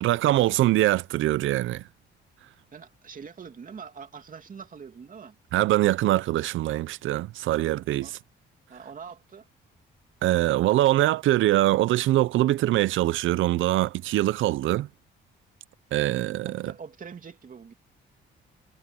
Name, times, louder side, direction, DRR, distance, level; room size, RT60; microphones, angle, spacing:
voice 1, 0.0-1.8 5.5-8.1 10.2-14.9 15.9-16.7, right 15 dB, 80° right, 0.6 m, -23 dB
voice 2, 2.7-5.4 8.0-8.2 8.7-9.5 16.4-17.7, right 6 dB, 45° right, 2.7 m, -43 dB
cardioid pair, 90°, 20 cm